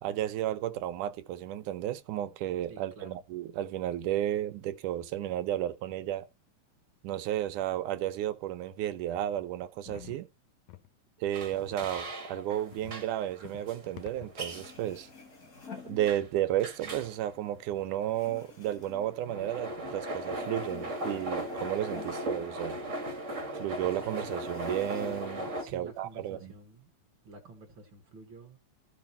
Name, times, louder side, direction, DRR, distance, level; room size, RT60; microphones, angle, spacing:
voice 1, 0.0-6.3 7.0-10.3 11.2-15.1 15.9-22.8 23.5-26.5, right 12 dB, 85° right, 2.3 m, -33 dB
voice 2, 2.7-3.2 25.6-26.9 27.2-28.6, right 3 dB, 50° right, 1.8 m, -49 dB
sound 1, 9.9-10.2 10.7-10.9 11.5-12.0 12.7-13.0 13.4-13.7 14.0-14.4, left 14 dB, 70° left, 2.4 m, -48 dB
sound 2, 11.3-25.6, right 1 dB, 25° right, 2.0 m, -38 dB
sound 3, 14.2-14.3 14.4-16.7 17.0-19.9 20.2-23.2 23.5-23.6 24.1-25.5 25.9-26.7, left 6 dB, 40° left, 1.3 m, -51 dB
14.5 x 5.7 x 4.3 m
omnidirectional pair, 3.6 m